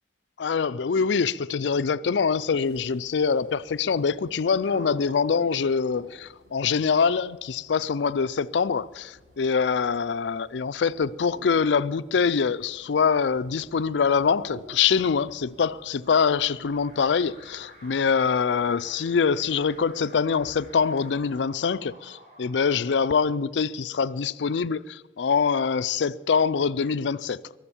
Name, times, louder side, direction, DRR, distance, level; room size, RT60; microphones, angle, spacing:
voice 1, 0.4-27.4, left 6 dB, 85° left, 0.4 m, -24 dB
sound 1, 2.5-21.8, right 1 dB, 75° right, 4.3 m, -51 dB
Alarm, 16.0-23.9, right 1 dB, 40° right, 4.4 m, -53 dB
22.5 x 7.8 x 7.2 m
head